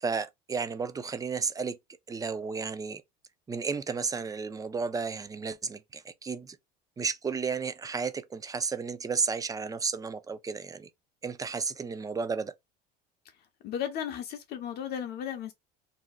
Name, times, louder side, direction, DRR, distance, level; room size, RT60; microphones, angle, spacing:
voice 1, 0.0-1.8 2.1-3.0 3.5-6.6 7.0-10.9 11.2-12.5, right 5 dB, 15° right, 0.5 m, -33 dB
voice 2, 13.6-15.5, left 9 dB, 50° left, 0.7 m, -35 dB
2.7 x 2.1 x 3.9 m
hypercardioid pair, 85°, 21 cm